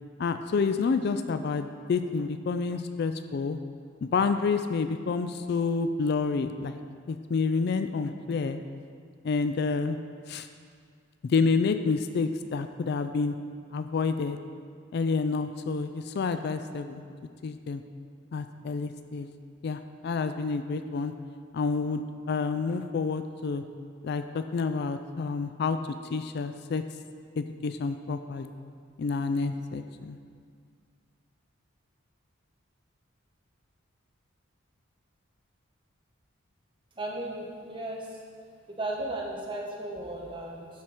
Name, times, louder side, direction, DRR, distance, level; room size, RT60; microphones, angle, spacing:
voice 1, 0.2-3.6 4.0-6.8 7.1-8.6 9.2-10.0 10.3-10.5 11.2-13.4 13.7-14.4 14.9-17.0 17.4-17.8 18.3-19.3 19.6-21.1 21.5-23.6 24.0-25.8 26.1-26.8 27.4-28.5 29.0-30.2, left 4 dB, 50° left, 9 dB, 0.3 m, -29 dB
voice 2, 37.0-38.1 38.8-40.7, right 1 dB, 25° right, -2 dB, 1.1 m, -35 dB
11.0 x 4.4 x 4.8 m, 2.1 s
head